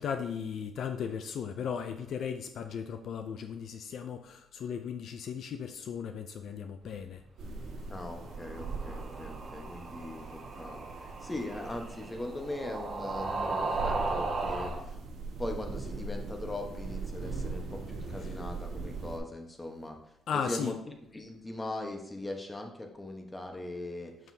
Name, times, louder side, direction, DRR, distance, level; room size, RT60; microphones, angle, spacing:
voice 1, 0.0-7.2 18.2-18.3 20.3-20.7, left 7 dB, 70° left, 8 dB, 0.4 m, -36 dB
sound 1, 7.4-19.2, right 4 dB, 75° right, 1.5 m, -41 dB
voice 2, 7.9-15.0 15.4-20.0 20.3-24.3, left 2 dB, 20° left, 3 dB, 1.1 m, -40 dB
sound 2, 8.1-14.8, right 3 dB, 50° right, 1.6 m, -36 dB
6.9 x 5.9 x 2.8 m, 0.85 s
cardioid pair, 90°, 0 cm